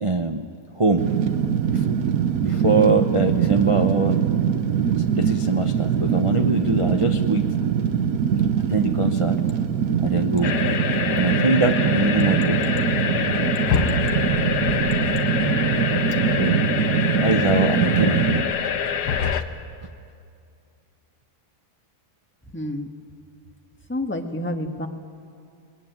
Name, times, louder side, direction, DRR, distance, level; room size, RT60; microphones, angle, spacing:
voice 1, 0.0-0.5 0.8-1.0 1.7-1.8 2.4-4.2 5.1-7.4 8.7-9.4 10.0-10.6 11.2-12.7 16.4-16.6 17.2-19.2, right 3 dB, 30° right, 4 dB, 0.6 m, -23 dB
Fire, 1.0-18.4, right 8 dB, 65° right, 1.3 m, -22 dB
sound 1, 10.4-19.4, left 7 dB, 80° left, 1.5 m, -25 dB
voice 2, 22.5-22.9 23.9-24.9, left 1 dB, 10° left, 4 dB, 1.2 m, -28 dB
23.0 x 20.0 x 9.3 m, 2.4 s
omnidirectional pair, 1.8 m